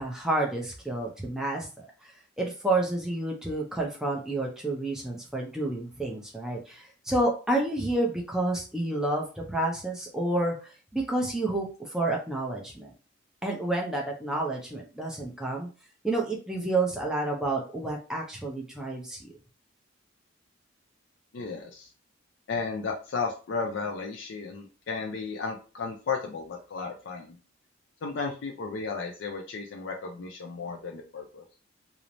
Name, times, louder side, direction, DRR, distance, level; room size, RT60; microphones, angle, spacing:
voice 1, 0.0-2.1 2.4-12.9 13.4-15.7 16.0-19.3, right 2 dB, 5° right, -2 dB, 0.5 m, -30 dB
voice 2, 21.3-21.9 22.5-27.4 28.0-31.4, left 4 dB, 65° left, 1 dB, 0.4 m, -34 dB
3.1 x 2.0 x 2.5 m, 0.35 s
head